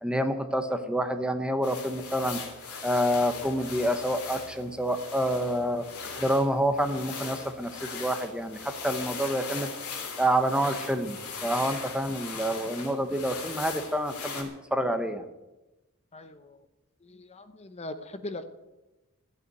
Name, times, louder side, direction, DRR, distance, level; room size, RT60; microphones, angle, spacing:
voice 1, 0.0-2.4 2.8-5.9 6.2-9.7 10.2-15.2, equal, 5° right, 8 dB, 0.9 m, -28 dB
sound 1, 1.6-14.4, left 5 dB, 85° left, 3.2 m, -39 dB
voice 2, 16.1-16.7 17.0-18.4, left 2 dB, 30° left, 9 dB, 0.8 m, -40 dB
14.0 x 8.4 x 9.2 m, 1.1 s
head